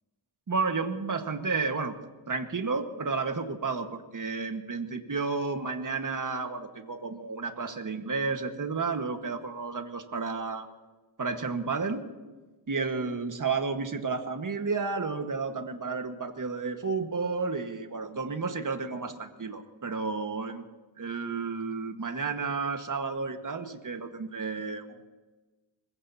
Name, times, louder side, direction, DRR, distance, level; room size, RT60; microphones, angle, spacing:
voice 1, 0.5-1.9 2.3-10.7 11.2-12.0 12.7-20.6 21.0-25.1, right 4 dB, 40° right, 6 dB, 1.6 m, -32 dB
23.5 x 21.5 x 2.9 m, 1.2 s
wide cardioid pair, 120°, 50 cm